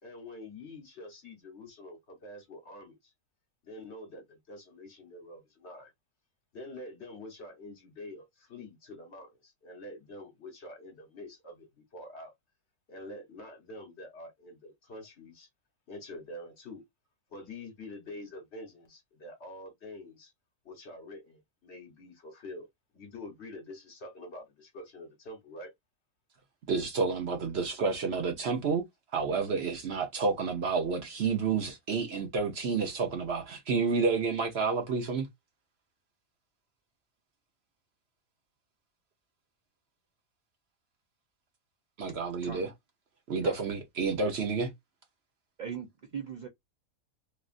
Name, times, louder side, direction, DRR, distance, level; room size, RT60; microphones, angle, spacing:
voice 1, 0.0-3.0 3.6-5.9 6.5-12.3 12.9-15.5 15.9-16.8 17.3-20.3 20.6-22.7 22.9-25.7, left 1 dB, 50° left, 1.3 m, -46 dB
voice 2, 26.7-28.8 29.1-35.3 42.0-42.7 43.3-44.7, right 4 dB, 55° right, 0.9 m, -30 dB
voice 3, 45.6-46.5, right 6 dB, 85° right, 0.4 m, -39 dB
3.0 x 2.4 x 2.4 m
omnidirectional pair, 1.5 m